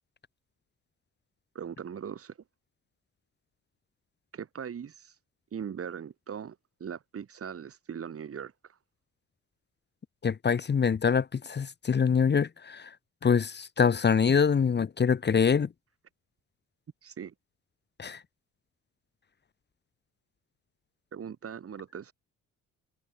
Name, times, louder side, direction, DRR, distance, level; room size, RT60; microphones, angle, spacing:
voice 1, 1.5-2.3 4.3-5.1 5.5-8.5 17.0-17.3 21.1-22.1, right 7 dB, 50° right, 3.2 m, -40 dB
voice 2, 10.2-12.9 13.2-15.7 18.0-18.2, left 6 dB, 35° left, 1.3 m, -25 dB
cardioid pair, 90°, 30 cm